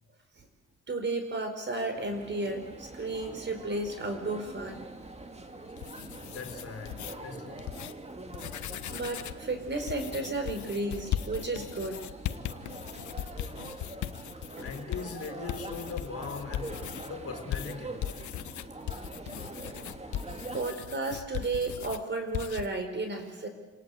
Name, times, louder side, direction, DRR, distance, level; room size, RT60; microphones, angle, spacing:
voice 1, 0.9-4.9 8.9-12.0 13.5-13.6 14.6-14.7 20.5-23.5, right 2 dB, 35° right, 5.1 m, -33 dB
sound 1, 1.9-20.7, right 2 dB, 20° right, 2.6 m, -44 dB
sound 2, 5.6-7.1 7.6-7.9 8.3-9.4 9.9-17.1 17.5-22.0 22.3-22.7, left 11 dB, 75° left, 1.2 m, -38 dB
voice 2, 6.3-7.7 14.6-18.1, left 5 dB, 50° left, 4.3 m, -40 dB
28.0 x 18.5 x 8.1 m
cardioid pair, 90°, 30 cm